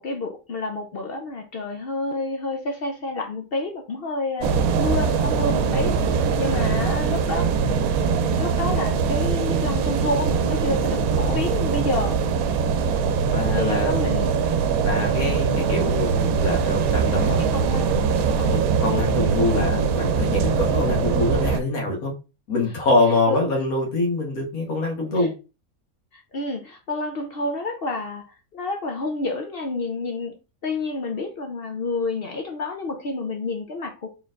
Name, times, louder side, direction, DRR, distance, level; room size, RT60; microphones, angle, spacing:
voice 1, 0.0-4.5 4.8-7.5 8.3-12.2 13.5-14.3 17.4-18.0 19.1-19.2 23.3-23.4 25.1-25.3 26.1-34.1, left 2 dB, 55° left, 0.7 m, -29 dB
sound 1, 4.4-21.6, right 5 dB, 85° right, 1.1 m, -22 dB
voice 2, 6.4-6.9 13.3-14.0 14.8-17.4 18.4-22.1 22.5-25.3, left 2 dB, 85° left, 1.8 m, -24 dB
4.3 x 3.8 x 2.4 m
omnidirectional pair, 1.5 m